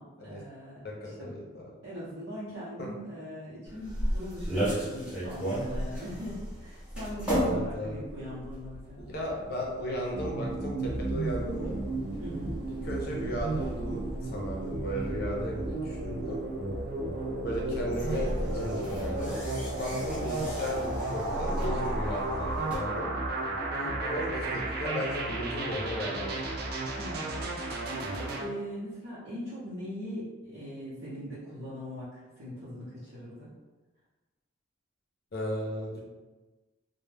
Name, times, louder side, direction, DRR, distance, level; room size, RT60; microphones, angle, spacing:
voice 1, 0.0-1.3 1.8-9.1 12.2-12.6 17.0-17.3 19.9-20.2 27.0-27.4 27.9-33.5, equal, 85° right, -12 dB, 0.7 m, -41 dB
voice 2, 0.8-1.4 2.8-2.9 7.3-8.0 9.0-11.8 12.8-16.4 17.4-19.3 19.7-23.1 23.8-26.5 35.3-36.0, equal, 50° left, -2 dB, 0.5 m, -35 dB
sound 1, 3.7-22.8, equal, 5° right, 0.6 m, -36 dB
sound 2, 10.1-28.4, right 2 dB, 50° right, 0.3 m, -34 dB
2.1 x 2.1 x 3.2 m, 1.2 s
head